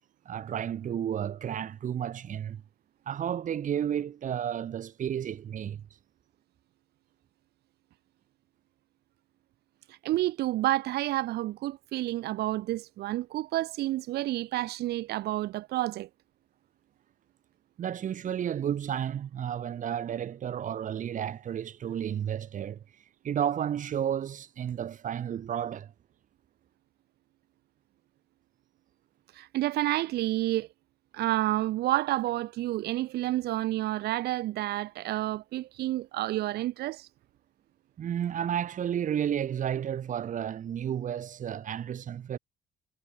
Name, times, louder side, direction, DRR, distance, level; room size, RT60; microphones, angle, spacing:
voice 1, 0.2-2.6 3.1-5.8 17.8-22.8 23.2-25.9 38.0-42.4, right 9 dB, 50° right, 2.7 m, -32 dB
voice 2, 9.9-16.1 29.3-30.7 31.1-37.1, right 16 dB, 75° right, 1.5 m, -29 dB
cardioid pair, 110°, 17 cm